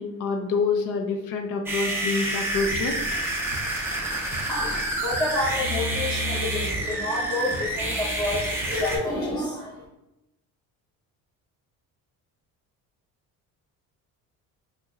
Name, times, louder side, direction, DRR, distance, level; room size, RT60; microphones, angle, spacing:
voice 1, 0.0-3.0, left 4 dB, 65° left, 4 dB, 0.6 m, -27 dB
sound 1, 1.7-9.0, right 1 dB, 5° right, 0.3 m, -28 dB
sound 2, 2.7-7.6 7.9-9.0, equal, 40° left, 1.0 m, -40 dB
voice 2, 4.5-9.8, left 2 dB, 10° left, -8 dB, 0.7 m, -29 dB
2.9 x 2.2 x 3.5 m, 0.90 s
cardioid pair, 155°, 35 cm